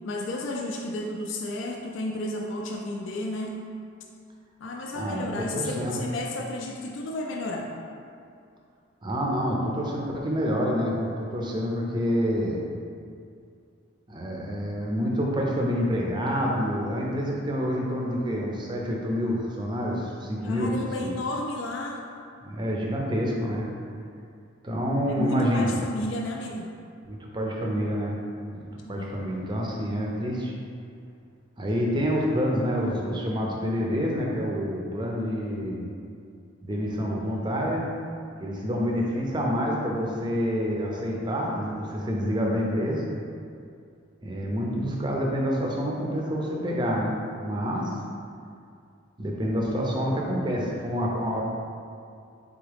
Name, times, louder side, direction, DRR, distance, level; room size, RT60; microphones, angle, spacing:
voice 1, 0.0-3.6 4.6-7.7 20.4-22.0 25.1-26.7 28.9-29.1, left 1 dB, 65° left, 0 dB, 0.3 m, -32 dB
voice 2, 5.0-6.0 9.0-12.6 14.1-21.1 22.4-23.7 24.6-25.7 27.1-28.2 28.5-30.5 31.6-35.8 36.6-37.8 38.4-43.0 44.2-47.2 47.4-47.9 49.2-51.4, equal, 20° right, -2 dB, 0.5 m, -27 dB
3.9 x 3.5 x 3.4 m, 2.4 s
head